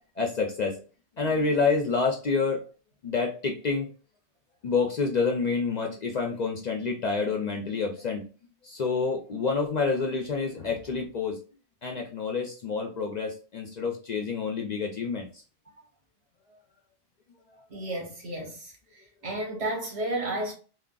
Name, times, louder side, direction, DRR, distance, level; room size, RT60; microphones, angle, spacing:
voice 1, 0.2-0.8 1.2-2.6 3.0-3.9 4.6-8.2 8.6-11.4 11.8-15.3 16.5-16.6, left 4 dB, 55° left, 0.5 m, -28 dB
voice 2, 17.7-18.7 19.2-20.5, right 1 dB, 70° right, 1.4 m, -32 dB
3.6 x 2.2 x 2.2 m
omnidirectional pair, 1.2 m